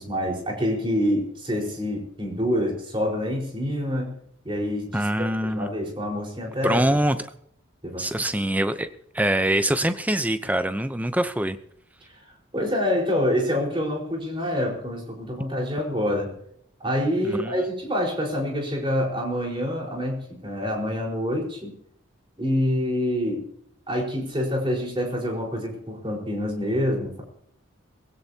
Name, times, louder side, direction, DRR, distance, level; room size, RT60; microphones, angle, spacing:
voice 1, 0.0-4.2 4.4-6.8 7.8-8.2 12.5-16.3 16.8-21.7 22.4-23.4 23.9-27.2, equal, 25° right, 0 dB, 4.6 m, -26 dB
voice 2, 4.9-5.7 6.6-7.2 8.0-8.9 9.1-11.6 17.2-17.5, right 1 dB, 5° right, 10 dB, 0.7 m, -24 dB
21.0 x 16.0 x 2.9 m, 0.70 s
head